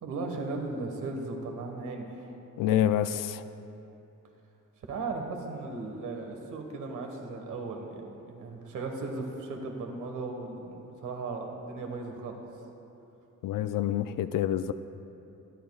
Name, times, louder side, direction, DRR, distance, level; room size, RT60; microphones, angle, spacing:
voice 1, 0.0-2.3 4.9-8.0 8.2-12.4, right 3 dB, 75° right, 2 dB, 1.5 m, -36 dB
voice 2, 2.6-3.4 13.4-14.7, left 10 dB, 90° left, 11 dB, 0.5 m, -27 dB
24.5 x 11.0 x 2.4 m, 2.8 s
wide cardioid pair, 155°, 31 cm